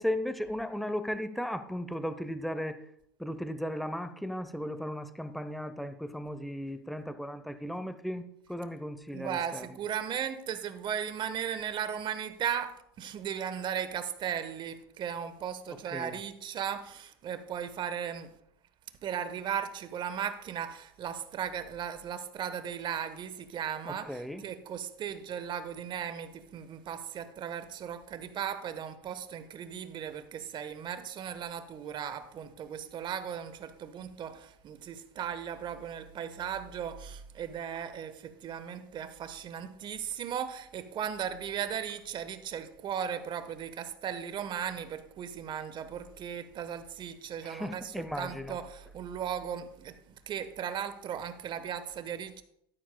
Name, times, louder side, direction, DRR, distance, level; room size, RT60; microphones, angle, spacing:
voice 1, 0.0-2.8 3.2-9.7 15.9-16.1 23.9-24.4 47.4-48.6, equal, ahead, 0.8 m, -36 dB
voice 2, 9.1-18.4 19.0-52.4, right 8 dB, 40° right, 1.2 m, -37 dB
13.0 x 12.0 x 2.3 m
hypercardioid pair, 95°, 13 cm